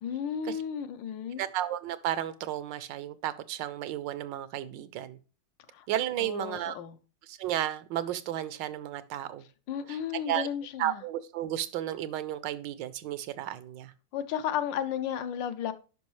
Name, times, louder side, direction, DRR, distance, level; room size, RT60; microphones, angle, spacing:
voice 1, 0.0-1.4 5.7-5.9 6.2-7.0 9.7-11.0 14.1-15.7, left 9 dB, 80° left, 9 dB, 1.3 m, -33 dB
voice 2, 1.4-5.2 5.9-6.8 7.3-9.5 9.9-10.5 10.8-13.9, right 12 dB, 80° right, 15 dB, 1.3 m, -33 dB
10.5 x 5.3 x 3.1 m, 0.35 s
omnidirectional pair, 2.0 m